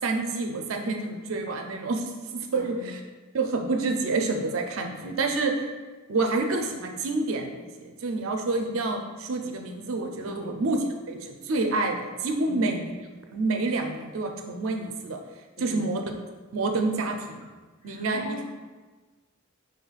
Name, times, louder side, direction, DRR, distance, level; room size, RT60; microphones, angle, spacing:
voice 1, 0.0-3.0 3.3-5.7 6.1-10.8 11.1-12.9 13.3-15.2 15.6-16.0 16.5-17.5 17.8-18.4, right 3 dB, 75° right, 3 dB, 0.5 m, -28 dB
voice 2, 2.5-3.0 10.3-10.6 12.5-12.9 15.6-15.9 17.8-18.4, left 2 dB, 40° left, -2 dB, 0.8 m, -40 dB
5.5 x 3.2 x 2.4 m, 1.3 s
head